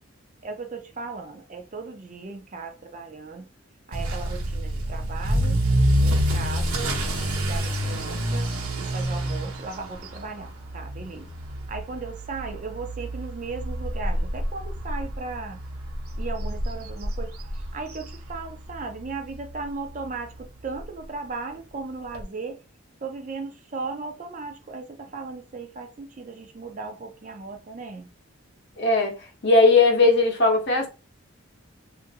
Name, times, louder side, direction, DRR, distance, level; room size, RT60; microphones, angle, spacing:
voice 1, 0.4-3.5 3.9-5.6 6.0-7.0 7.4-8.5 8.8-11.3 11.7-15.6 16.2-17.3 17.7-22.6 23.0-28.1, right 4 dB, 35° right, 0.4 m, -36 dB
Motor vehicle (road) / Accelerating revving vroom, 3.9-18.8 19.1-19.5 20.0-20.1 20.4-20.5 20.7-20.8 22.1-22.2, equal, 90° right, 0.9 m, -27 dB
voice 2, 28.8-30.9, left 3 dB, 50° left, 0.7 m, -19 dB
3.0 x 2.5 x 2.7 m
head